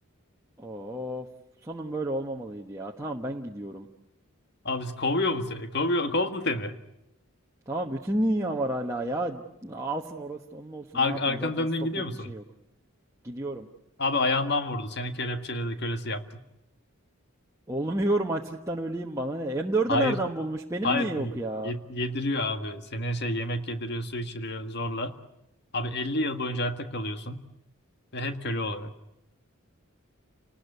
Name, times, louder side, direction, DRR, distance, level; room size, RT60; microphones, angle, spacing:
voice 1, 0.6-1.3 1.6-3.9 7.7-11.7 12.3-12.4 13.2-13.7 17.7-21.7, right 1 dB, 15° right, -1 dB, 1.2 m, -30 dB
voice 2, 4.6-6.7 10.9-12.3 14.0-16.2 19.9-20.2 20.8-21.3 21.6-25.2 25.7-27.4 28.1-28.9, left 2 dB, 50° left, 8 dB, 1.8 m, -29 dB
29.5 x 19.5 x 8.3 m, 0.88 s
head